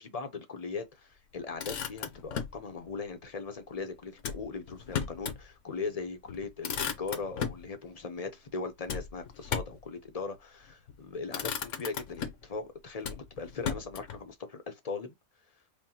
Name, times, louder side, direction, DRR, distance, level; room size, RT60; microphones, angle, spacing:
voice 1, 0.0-15.1, left 4 dB, 40° left, 0.6 m, -39 dB
Motor vehicle (road), 1.3-2.6 4.2-5.4 5.8-5.9 6.3-7.7 8.9-9.9 10.7-11.0 11.3-12.5 13.0-14.2, left 7 dB, 70° left, 1.1 m, -36 dB
5.2 x 2.2 x 2.8 m
omnidirectional pair, 1.4 m